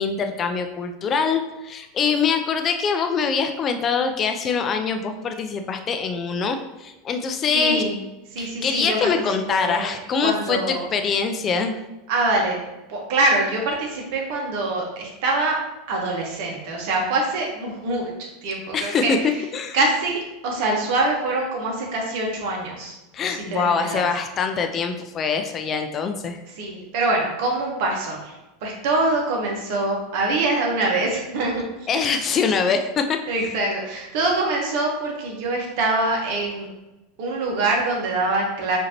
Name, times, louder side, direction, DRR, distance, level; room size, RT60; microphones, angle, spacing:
voice 1, 0.0-7.8 8.4-11.7 18.7-19.2 19.5-19.8 23.1-26.4 31.9-33.2, left 5 dB, 35° left, 6 dB, 0.5 m, -24 dB
voice 2, 7.5-8.0 8.3-9.0 9.5-9.9 10.2-10.9 12.1-12.6 12.9-15.5 15.9-18.1 18.4-19.3 19.7-22.9 23.3-24.1 26.6-28.3 28.6-31.9 33.3-36.7 37.2-38.8, right 2 dB, 65° right, 0 dB, 1.2 m, -24 dB
4.9 x 2.8 x 3.0 m, 1.0 s
hypercardioid pair, 95°, 0 cm